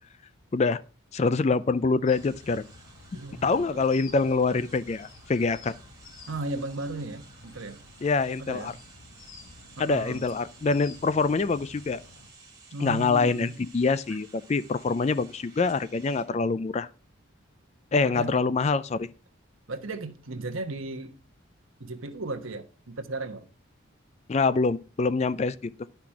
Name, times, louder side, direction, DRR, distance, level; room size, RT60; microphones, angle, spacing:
voice 1, 1.1-2.6 3.4-5.7 8.0-8.7 9.8-12.0 12.8-16.9 17.9-19.1 24.3-25.7, left 4 dB, 30° left, 0.3 m, -25 dB
sound 1, 2.1-12.3, left 3 dB, 70° left, 1.3 m, -51 dB
sound 2, 2.1-16.7, right 4 dB, 20° right, 2.3 m, -54 dB
voice 2, 3.1-3.8 6.3-7.8 8.4-8.8 9.8-10.2 12.7-13.6 18.0-18.3 19.7-21.2 21.8-23.5, right 2 dB, 75° right, 1.1 m, -35 dB
10.5 x 5.9 x 4.7 m
head